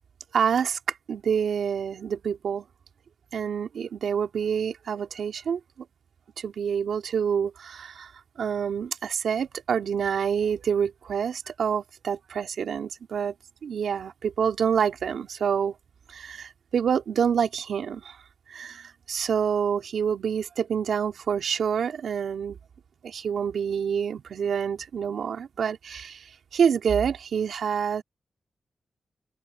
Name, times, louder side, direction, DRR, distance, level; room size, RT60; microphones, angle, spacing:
voice 1, 0.3-0.8 1.1-2.6 3.3-5.6 6.4-8.1 8.4-13.3 13.6-15.7 16.1-18.2 18.5-22.6 23.0-26.3 26.5-28.0, right 7 dB, 85° right, 3.1 m, -27 dB
open air
cardioid pair, 65°, 0 cm